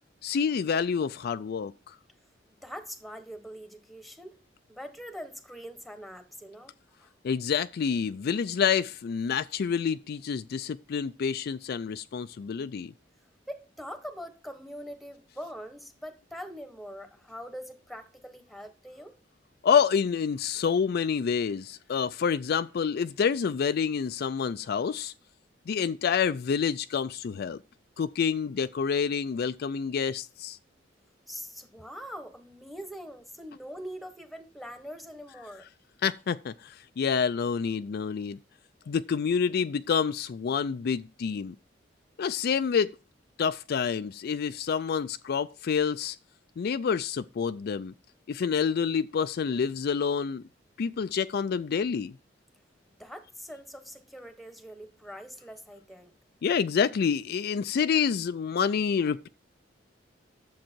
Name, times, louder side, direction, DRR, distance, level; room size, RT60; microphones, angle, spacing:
voice 1, 0.2-2.0 7.2-12.9 19.6-25.1 25.7-27.6 28.0-30.6 36.0-38.4 38.9-41.5 42.2-42.9 43.4-46.2 46.6-47.9 48.3-50.4 50.8-52.1 56.4-59.3, left 6 dB, 55° left, 0.4 m, -28 dB
voice 2, 2.5-4.3 4.7-6.7 7.0-7.1 13.5-19.2 31.3-35.7 53.0-56.1, equal, ahead, 1.2 m, -43 dB
10.5 x 7.4 x 4.5 m
head